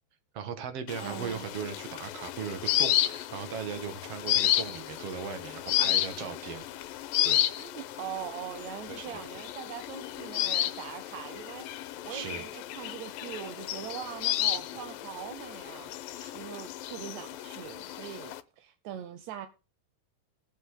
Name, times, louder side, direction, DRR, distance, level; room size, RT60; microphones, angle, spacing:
voice 1, 0.3-6.7 7.2-7.4 8.9-9.2 12.1-12.5 16.1-16.3, right 7 dB, 50° right, 2.3 m, -38 dB
sound 1, 0.9-18.4, left 13 dB, 85° left, 2.5 m, -32 dB
voice 2, 1.0-1.5 5.8-6.3 7.6-19.5, right 10 dB, 75° right, 1.8 m, -42 dB
19.0 x 7.3 x 3.8 m
omnidirectional pair, 4.0 m